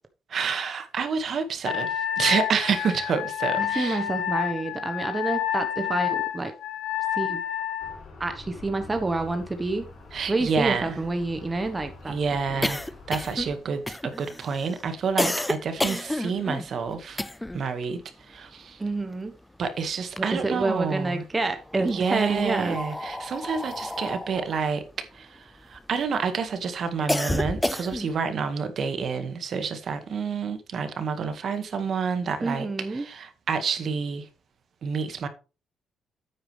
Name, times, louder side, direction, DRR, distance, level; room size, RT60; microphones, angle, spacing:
voice 1, 0.3-4.0 10.1-10.9 11.5-11.7 12.1-17.2 17.5-18.8 19.6-21.2 21.8-34.3 34.8-35.3, right 5 dB, 55° right, 1.8 m, -29 dB
Wind instrument woodwind instrument, 1.6-8.0, left 11 dB, 90° left, 1.0 m, -29 dB
voice 2, 3.6-6.5 7.2-7.4 8.2-9.9 10.3-12.1 12.5-12.6 18.8-19.3 20.2-22.8 32.4-33.1, right 2 dB, 20° right, 1.2 m, -28 dB
sound 1, 7.8-13.6, left 3 dB, 55° left, 5.7 m, -46 dB
sound 2, 9.5-9.6 9.8-9.9 10.2-17.7 18.0-19.6 19.9-20.9 21.6-26.1 26.5-28.2, left 1 dB, 10° left, 0.5 m, -31 dB
9.4 x 8.8 x 3.4 m
cardioid pair, 90°, 0 cm